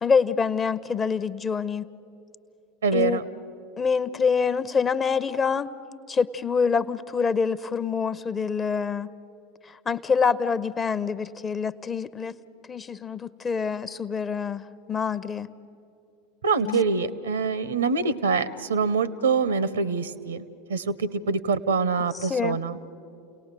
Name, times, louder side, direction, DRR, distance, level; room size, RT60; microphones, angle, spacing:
voice 1, 0.0-1.8 2.9-3.2 3.8-5.7 6.1-9.1 9.7-12.4 12.7-14.6 14.9-15.5 16.6-16.8 22.2-22.6, left 5 dB, 25° left, 14 dB, 0.7 m, -26 dB
voice 2, 2.8-3.2 16.4-20.4 20.7-22.8, right 4 dB, 75° right, 18 dB, 0.7 m, -25 dB
29.5 x 18.5 x 6.7 m, 2.8 s
figure-of-eight pair, 80°, 0 cm